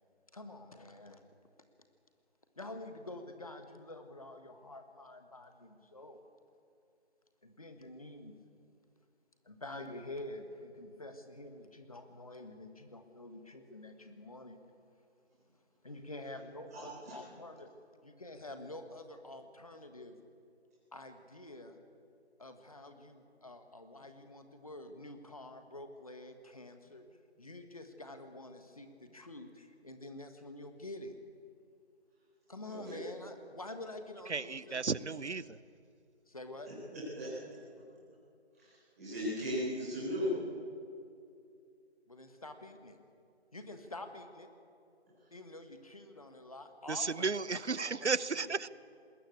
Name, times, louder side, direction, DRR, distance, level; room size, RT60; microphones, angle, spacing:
voice 1, 0.3-1.2 2.6-6.2 7.4-8.4 9.4-14.6 15.8-17.7 18.0-20.2 20.9-21.8 22.4-27.0 27.4-31.1 32.5-34.8 36.3-36.7 42.1-43.0 43.5-44.5 45.3-48.5, left 2 dB, 30° left, 7 dB, 1.5 m, -48 dB
voice 2, 16.7-17.2 32.6-33.0 36.6-36.7 37.1-37.3 39.0-40.3, left 1 dB, 15° right, -10 dB, 4.7 m, -36 dB
voice 3, 34.3-35.6 46.9-48.7, right 4 dB, 85° right, 19 dB, 0.8 m, -34 dB
20.5 x 17.0 x 8.5 m, 2.5 s
figure-of-eight pair, 170°, 34 cm